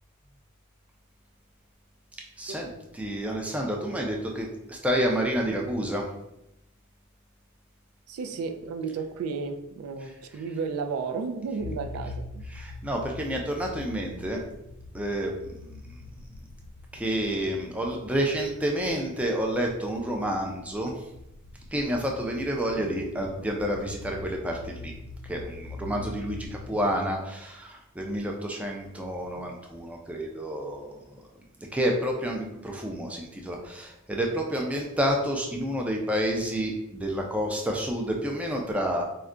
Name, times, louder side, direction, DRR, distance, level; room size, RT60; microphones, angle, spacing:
voice 1, 2.4-2.7 3.0-6.1 12.5-14.4 14.9-15.7 16.9-20.9 21.7-24.9 25.3-31.0 31.7-39.0, equal, 5° right, 0 dB, 0.3 m, -29 dB
voice 2, 8.1-12.4 22.6-23.1 26.7-26.8 29.3-29.5, right 5 dB, 90° right, 6 dB, 0.3 m, -33 dB
sound 1, 11.6-27.2, left 2 dB, 85° left, 0.4 m, -43 dB
2.3 x 2.2 x 3.7 m, 0.85 s
head